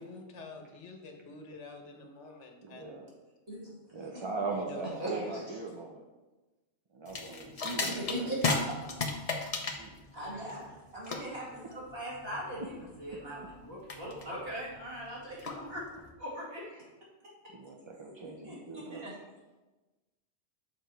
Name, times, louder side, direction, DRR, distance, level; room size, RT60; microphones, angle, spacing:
voice 1, 0.1-3.0 4.5-5.4, left 3 dB, 80° left, 3 dB, 1.3 m, -47 dB
voice 2, 2.2-3.1 3.9-6.1 6.9-8.3 9.5-10.0 10.3-10.8 12.6-13.8 14.1-14.4 16.7-16.9 17.5-19.3, right 3 dB, 35° right, 0 dB, 0.5 m, -41 dB
sound 1, 7.1-16.1, left 3 dB, 40° left, 0.7 m, -36 dB
voice 3, 8.1-8.6 10.1-10.7 10.9-12.6 13.0-15.9 16.2-16.6 18.5-19.1, equal, 55° right, -6 dB, 2.5 m, -39 dB
6.9 x 4.7 x 4.5 m, 1.1 s
omnidirectional pair, 1.2 m